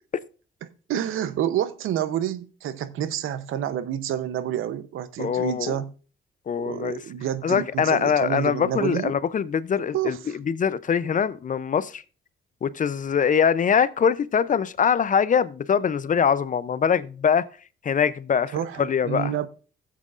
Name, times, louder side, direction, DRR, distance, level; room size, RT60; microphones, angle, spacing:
voice 1, 0.6-5.9 6.6-9.1 9.9-10.4 18.5-19.5, right 10 dB, 75° right, 0.7 m, -28 dB
voice 2, 5.2-5.8 6.5-7.0 7.4-10.2 10.5-12.0 12.6-17.4 17.8-19.3, left 7 dB, 40° left, 0.5 m, -23 dB
15.0 x 7.5 x 2.5 m
cardioid pair, 80°, 21 cm